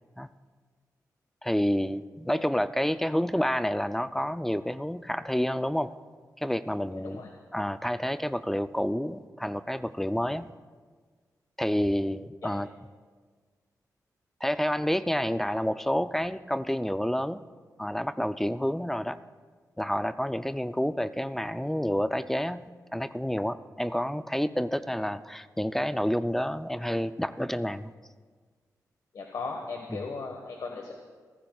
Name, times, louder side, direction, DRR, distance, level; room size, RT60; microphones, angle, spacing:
voice 1, 1.4-5.9 6.4-7.2 7.5-10.5 11.6-12.7 14.4-17.4 17.8-19.2 19.8-27.9 29.9-30.0, equal, 5° left, 12 dB, 0.4 m, -29 dB
voice 2, 6.9-7.3 12.4-12.5 29.1-30.9, left 4 dB, 70° left, 2 dB, 1.4 m, -37 dB
28.5 x 15.0 x 2.4 m, 1.6 s
wide cardioid pair, 125°, 7 cm